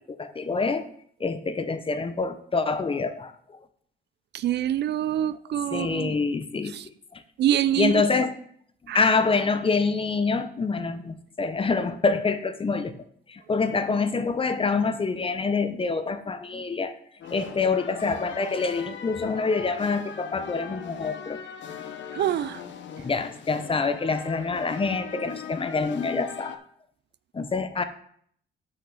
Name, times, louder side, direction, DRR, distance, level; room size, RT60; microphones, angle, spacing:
voice 1, 0.1-0.8 1.2-3.3 5.7-6.7 7.1-7.2 7.8-8.3 8.9-12.9 13.3-16.9 17.3-21.4 23.0-26.6 27.3-27.8, left 4 dB, 25° left, 0.8 m, -26 dB
voice 2, 4.3-6.1 6.7-6.9 7.4-8.1 8.9-9.0 22.1-22.6, right 11 dB, 60° right, 0.4 m, -25 dB
sound 1, 17.2-26.6, left 7 dB, 65° left, 0.9 m, -40 dB
6.4 x 5.8 x 6.0 m
cardioid pair, 90°, 20 cm